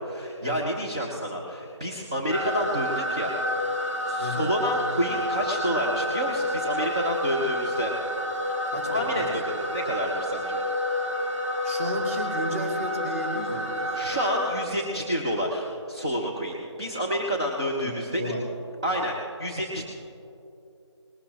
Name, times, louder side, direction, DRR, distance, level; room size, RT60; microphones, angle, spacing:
voice 1, 0.0-3.3 3.7-7.9 8.9-10.6 13.9-18.2 18.8-19.9, equal, 10° right, -3 dB, 0.6 m, -29 dB
sound 1, 2.3-14.7, left 1 dB, 85° right, 2.2 m, -29 dB
voice 2, 4.2-4.6 8.7-9.4 11.6-14.0 17.8-17.9 18.2-18.5, right 1 dB, 25° right, 1 dB, 2.2 m, -33 dB
20.0 x 19.0 x 2.9 m, 2.8 s
figure-of-eight pair, 165°, 15 cm